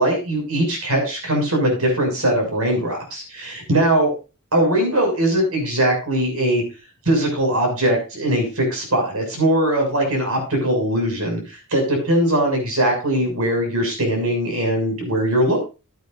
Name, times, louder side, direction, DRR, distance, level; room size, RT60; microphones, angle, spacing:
voice 1, 0.0-4.1 4.5-6.6 7.0-15.6, right 1 dB, 75° right, 2 dB, 6.6 m, -20 dB
16.0 x 9.5 x 2.6 m, 0.30 s
head